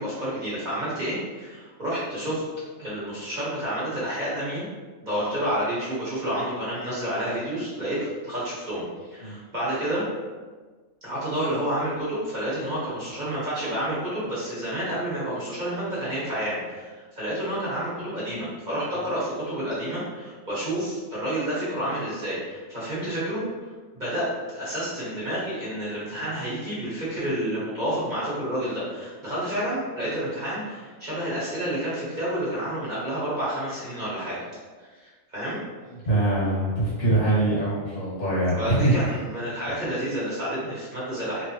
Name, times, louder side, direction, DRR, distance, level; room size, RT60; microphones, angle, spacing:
voice 1, 0.0-2.4 2.8-4.7 5.0-8.8 9.1-10.0 11.0-23.4 23.9-34.4 34.8-35.6 38.6-41.4, right 1 dB, 35° right, -9 dB, 1.2 m, -29 dB
voice 2, 36.1-39.2, right 2 dB, 60° left, -9 dB, 1.7 m, -23 dB
3.3 x 3.1 x 2.8 m, 1.4 s
omnidirectional pair, 1.4 m